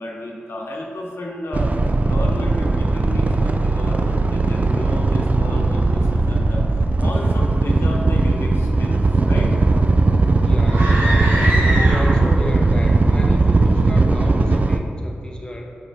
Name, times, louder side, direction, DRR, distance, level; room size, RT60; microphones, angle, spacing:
voice 1, 0.0-1.7 2.0-6.6 7.0-9.0 9.2-9.5, left 1 dB, 80° left, -2 dB, 0.9 m, -32 dB
sound 1, 1.5-14.8, right 3 dB, 40° right, 0.4 m, -18 dB
voice 2, 10.4-15.7, left 1 dB, 20° left, 0 dB, 0.7 m, -32 dB
sound 2, 10.6-12.4, equal, 60° right, 1.4 m, -24 dB
5.3 x 4.4 x 4.1 m, 2.6 s
cardioid pair, 55°, 4 cm